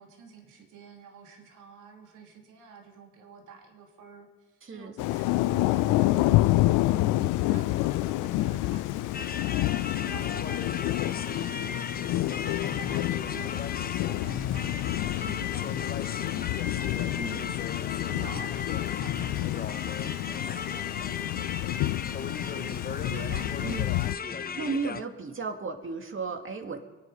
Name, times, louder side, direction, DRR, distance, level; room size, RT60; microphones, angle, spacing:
voice 1, 0.0-9.7 10.0-16.9 18.0-22.0, right 5 dB, 75° right, 2 dB, 2.7 m, -50 dB
voice 2, 4.6-4.9 15.2-15.5 17.1-17.5 18.1-18.4 22.3-26.8, right 4 dB, 40° right, 4 dB, 2.4 m, -36 dB
Thunder / Rain, 5.0-24.2, left 17 dB, 80° left, 0.5 m, -28 dB
sound 1, 9.1-25.0, left 6 dB, 30° left, 0.9 m, -36 dB
24.5 x 9.8 x 5.5 m, 1.2 s
hypercardioid pair, 50°, 31 cm